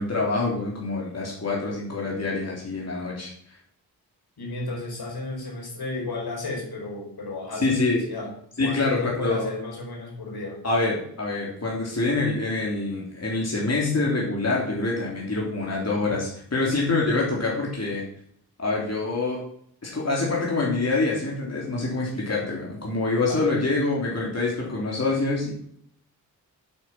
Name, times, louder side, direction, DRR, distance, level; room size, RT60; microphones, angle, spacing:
voice 1, 0.0-3.3 7.6-8.0 8.6-9.5 10.6-18.0 18.6-19.4 19.8-25.5, left 3 dB, 40° left, -4 dB, 3.6 m, -26 dB
voice 2, 4.4-8.3 8.6-10.6 23.3-23.7, left 2 dB, 70° left, -1 dB, 4.9 m, -33 dB
8.4 x 8.0 x 6.1 m, 0.65 s
cardioid pair, 60°, 39 cm